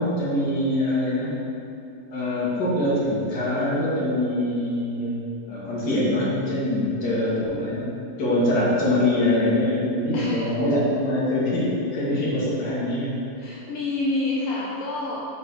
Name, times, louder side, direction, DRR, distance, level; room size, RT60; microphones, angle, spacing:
voice 1, 0.0-1.3 2.1-5.2 5.5-7.9 8.2-13.2, left 1 dB, 40° left, -8 dB, 1.8 m, -23 dB
voice 2, 10.1-10.5 12.1-12.2 13.4-15.3, left 2 dB, 80° left, -5 dB, 1.4 m, -28 dB
6.6 x 4.6 x 4.6 m, 2.7 s
omnidirectional pair, 3.6 m